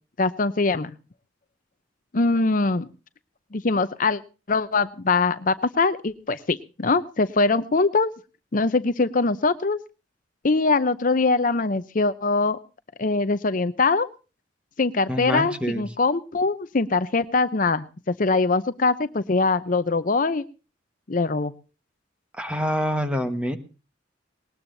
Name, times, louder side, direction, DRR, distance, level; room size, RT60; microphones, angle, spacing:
voice 1, 0.2-0.9 2.1-2.9 3.5-4.2 4.5-8.1 8.5-9.8 10.4-12.6 13.0-14.1 14.8-20.4 21.1-21.5, left 3 dB, 45° left, 12 dB, 0.6 m, -22 dB
voice 2, 15.1-15.8 22.4-23.6, equal, 5° right, 8 dB, 1.4 m, -26 dB
19.5 x 19.5 x 2.7 m, 0.34 s
head